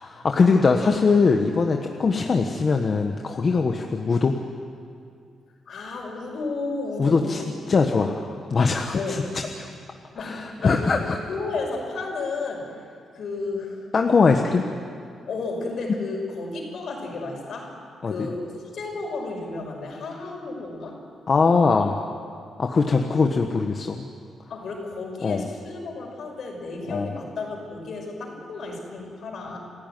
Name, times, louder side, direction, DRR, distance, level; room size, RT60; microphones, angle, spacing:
voice 1, 0.0-4.4 7.0-7.4 7.7-8.1 8.5-9.2 10.2-11.2 13.9-14.6 18.0-18.1 21.3-22.0 22.6-24.1 25.2-25.5 26.9-27.1, left 4 dB, 45° left, 3 dB, 1.3 m, -21 dB
voice 2, 5.7-7.5 7.7-8.1 8.9-9.3 10.1-12.7 13.1-13.9 14.3-14.4 15.2-17.7 18.1-21.0 24.5-29.6, left 3 dB, 65° left, 1 dB, 5.8 m, -32 dB
27.5 x 15.0 x 9.2 m, 2.4 s
cardioid pair, 95°, 0 cm